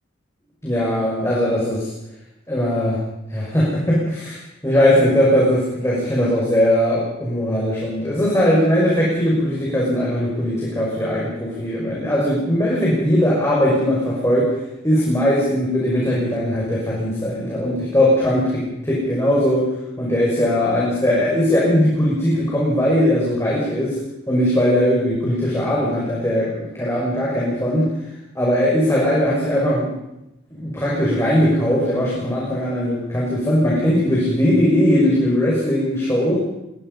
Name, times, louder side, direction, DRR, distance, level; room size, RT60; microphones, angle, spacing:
voice 1, 0.6-1.9 2.5-3.0 3.3-4.4 4.6-14.5 14.8-19.7 20.0-24.0 24.3-27.9 28.3-29.9 30.5-36.4, equal, 15° left, -5 dB, 6.0 m, -19 dB
22.0 x 22.0 x 5.6 m, 0.87 s
head